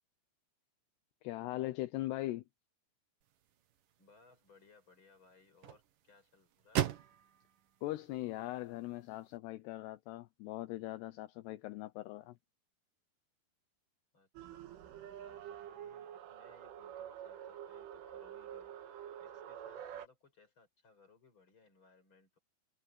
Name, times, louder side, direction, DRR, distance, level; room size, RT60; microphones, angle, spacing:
voice 1, 1.2-2.4 7.8-12.3, left 17 dB, 75° left, 2.6 m, -40 dB
sound 1, 3.2-9.4, right 11 dB, 65° right, 2.3 m, -43 dB
voice 2, 4.0-7.0 14.1-14.6 15.1-22.4, left 4 dB, 25° left, 6.4 m, -65 dB
sound 2, 14.4-20.1, right 10 dB, 85° right, 4.5 m, -48 dB
omnidirectional pair, 5.5 m